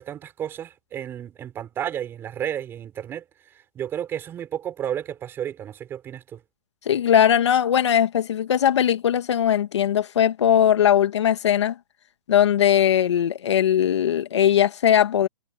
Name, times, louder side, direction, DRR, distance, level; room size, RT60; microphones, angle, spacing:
voice 1, 0.0-3.2 3.7-6.4, right 9 dB, 15° right, 5.0 m, -32 dB
voice 2, 6.8-11.8 12.3-15.3, left 9 dB, 85° left, 1.7 m, -19 dB
hypercardioid pair, 170°, 14 cm